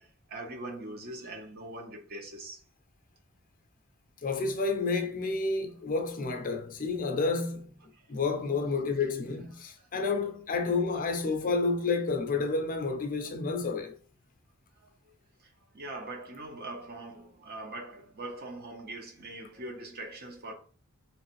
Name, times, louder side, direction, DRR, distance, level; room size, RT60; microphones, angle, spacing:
voice 1, 0.0-2.6 9.8-9.9 13.3-13.4 15.7-20.5, right 2 dB, 45° right, 0.8 m, -42 dB
voice 2, 4.2-7.7 8.1-14.0, left 3 dB, 40° left, 0.6 m, -30 dB
3.2 x 3.1 x 3.0 m
head